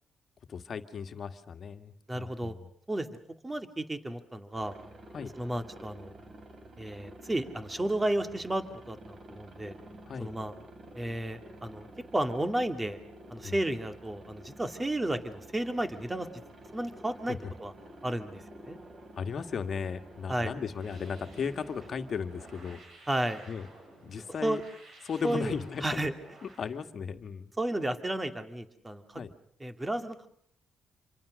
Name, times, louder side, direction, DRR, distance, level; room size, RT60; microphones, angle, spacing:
voice 1, 0.5-2.7 5.1-5.3 10.1-10.3 13.4-13.6 17.3-17.4 19.2-22.8 23.5-23.7 24.0-24.6 25.0-26.0 26.4-27.5 29.1-29.3, left 6 dB, 50° left, 8 dB, 1.9 m, -36 dB
voice 2, 2.1-2.5 2.9-3.1 3.4-4.7 5.3-6.1 6.8-9.7 10.2-10.5 11.0-11.9 12.1-13.0 13.3-16.3 16.7-17.7 18.0-18.8 20.3-20.5 23.1-23.4 24.4-24.6 25.2-25.5 25.8-26.1 27.6-29.2 29.6-30.2, right 1 dB, 15° right, 7 dB, 2.3 m, -32 dB
Aircraft, 4.5-22.8, right 1 dB, 40° right, 3.6 m, -50 dB
sound 1, 20.7-26.7, right 2 dB, 60° right, 7.8 m, -54 dB
27.5 x 24.0 x 6.5 m, 0.66 s
cardioid pair, 90°, 0 cm